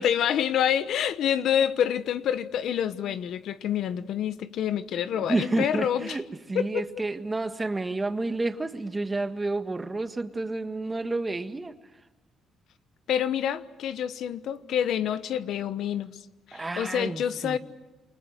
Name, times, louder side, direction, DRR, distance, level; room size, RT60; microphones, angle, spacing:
voice 1, 0.0-6.2 6.5-6.9 13.1-16.2 16.5-17.6, left 9 dB, 75° left, 13 dB, 1.1 m, -27 dB
voice 2, 5.1-11.8 16.5-17.6, right 2 dB, 20° right, 8 dB, 1.7 m, -30 dB
29.0 x 23.5 x 8.0 m, 1.1 s
cardioid pair, 90°, 0 cm